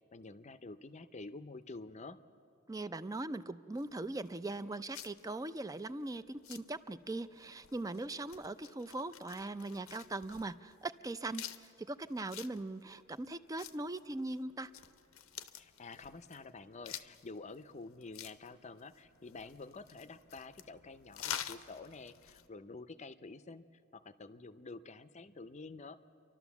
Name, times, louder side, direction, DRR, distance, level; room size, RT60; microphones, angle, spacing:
voice 1, 0.1-2.2 15.5-23.6 23.9-26.0, left 3 dB, 35° left, 12 dB, 0.6 m, -49 dB
voice 2, 2.7-14.7, right 2 dB, 15° right, 13 dB, 0.4 m, -40 dB
sound 1, 3.8-22.5, left 10 dB, 85° left, 0.7 m, -50 dB
30.0 x 12.0 x 7.1 m, 2.7 s
head